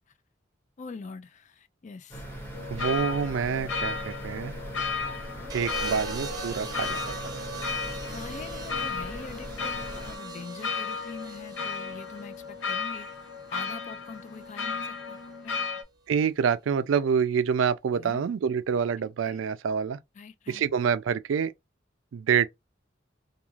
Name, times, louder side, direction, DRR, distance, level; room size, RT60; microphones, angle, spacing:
voice 1, 0.8-2.3 8.1-13.1 13.5-15.2 15.4-15.6 17.9-18.3 19.0-19.4 20.2-20.6, left 4 dB, 40° left, 0.4 m, -43 dB
sound 1, 2.1-10.2, right 1 dB, 15° left, 1.0 m, -40 dB
sound 2, 2.5-15.8, left 5 dB, 90° left, 0.6 m, -35 dB
voice 2, 2.7-4.6 5.5-7.2 16.1-20.0 20.5-21.5 22.1-22.5, right 7 dB, 85° right, 0.3 m, -27 dB
sound 3, 5.5-13.7 14.9-15.3, right 4 dB, 20° right, 0.8 m, -41 dB
2.4 x 2.3 x 3.0 m
head